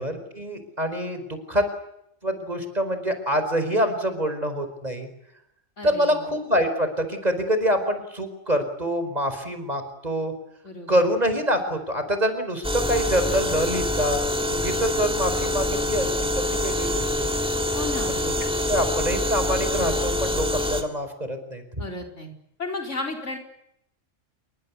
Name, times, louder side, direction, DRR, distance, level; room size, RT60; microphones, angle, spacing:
voice 1, 0.0-1.7 2.2-5.1 5.8-10.3 10.9-14.2 14.5-17.3 18.1-18.2 18.7-21.6, equal, 30° right, 8 dB, 5.0 m, -25 dB
voice 2, 5.8-6.2 10.6-11.1 17.7-18.2 21.8-22.3 22.6-23.4, left 2 dB, 70° left, 3 dB, 5.1 m, -33 dB
sound 1, 12.6-20.8, left 1 dB, 5° right, 3.0 m, -25 dB
28.5 x 23.5 x 8.6 m, 0.77 s
omnidirectional pair, 1.3 m